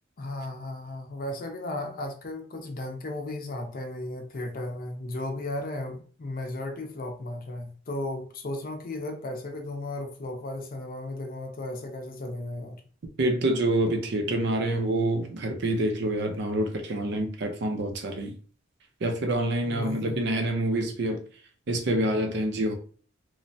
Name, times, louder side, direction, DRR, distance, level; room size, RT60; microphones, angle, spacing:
voice 1, 0.2-12.8 19.6-20.3, left 2 dB, 50° left, 0.5 m, -35 dB
voice 2, 13.2-18.4 19.0-21.2 21.7-22.7, right 1 dB, 65° right, 0.5 m, -27 dB
3.1 x 2.1 x 2.6 m
head